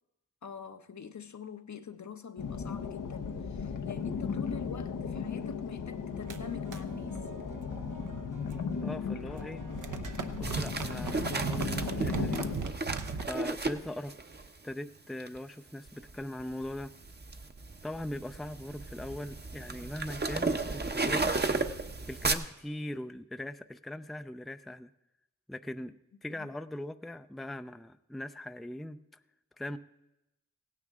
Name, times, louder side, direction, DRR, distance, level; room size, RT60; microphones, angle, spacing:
voice 1, 0.4-7.2 26.4-26.5, left 7 dB, 60° left, 0.9 m, -44 dB
sound 1, 2.4-12.6, left 6 dB, 90° left, 0.9 m, -36 dB
sound 2, 6.3-8.9 9.2-13.3, right 5 dB, 70° right, 0.9 m, -38 dB
voice 2, 8.8-9.6 10.4-12.4 13.2-14.2 14.6-16.9 17.8-21.4 22.1-24.9 25.5-25.9 26.2-29.2 29.6-29.8, left 1 dB, ahead, 0.5 m, -40 dB
sound 3, 10.4-14.5 15.2-15.4 15.9-22.3, right 3 dB, 30° right, 0.9 m, -34 dB
16.5 x 9.6 x 3.6 m
cardioid pair, 40°, 32 cm